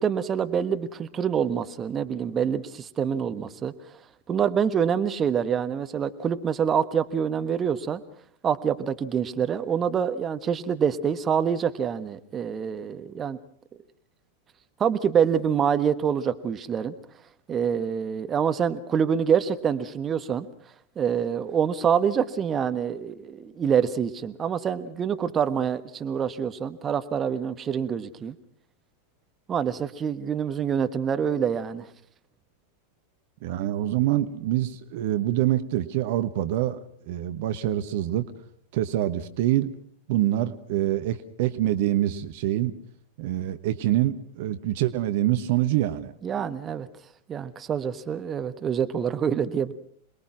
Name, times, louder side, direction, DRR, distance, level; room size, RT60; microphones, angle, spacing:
voice 1, 0.0-3.7 4.3-8.0 8.4-13.4 14.8-16.9 17.5-20.5 21.0-28.3 29.5-31.9 46.2-46.9 47.3-49.7, right 7 dB, 25° right, 10 dB, 1.3 m, -26 dB
voice 2, 33.4-36.8 37.1-38.3 38.7-39.7 40.1-42.7 43.2-46.1, right 13 dB, 50° right, 11 dB, 1.2 m, -25 dB
27.0 x 21.5 x 6.1 m, 0.63 s
figure-of-eight pair, 90°, 0 cm